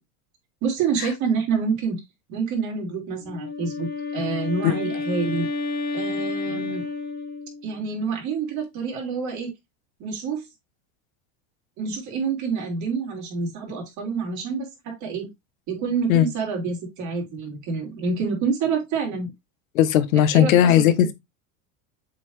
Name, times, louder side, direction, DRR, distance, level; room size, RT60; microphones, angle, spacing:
voice 1, 0.6-2.0 2.3-5.5 5.9-6.8 7.6-9.5 10.0-10.4 11.8-15.3 15.7-19.3 20.3-20.9, right 5 dB, 45° right, 3.6 m, -27 dB
Wind instrument woodwind instrument, 3.2-7.8, left 3 dB, 25° left, 1.5 m, -30 dB
voice 2, 19.7-21.1, left 11 dB, 90° left, 1.1 m, -17 dB
7.4 x 4.1 x 3.2 m
supercardioid pair, 125°, 40 cm